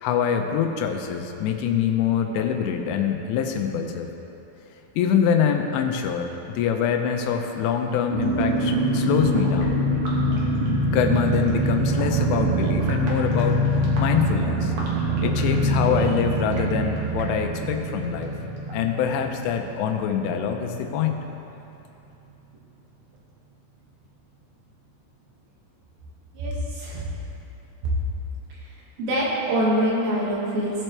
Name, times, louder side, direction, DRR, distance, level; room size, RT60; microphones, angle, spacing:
voice 1, 0.0-4.1 5.0-9.8 10.9-14.7 15.2-18.3 18.7-21.2, left 7 dB, 80° left, 4 dB, 2.9 m, -25 dB
sound 1, 8.1-20.5 20.7-20.8 21.1-21.4, right 1 dB, 60° right, 1.5 m, -24 dB
voice 2, 26.3-27.1 27.8-27.9 28.5-28.7 29.0-30.8, right 1 dB, 85° right, -5 dB, 4.1 m, -25 dB
17.0 x 7.6 x 3.3 m, 2.9 s
omnidirectional pair, 5.0 m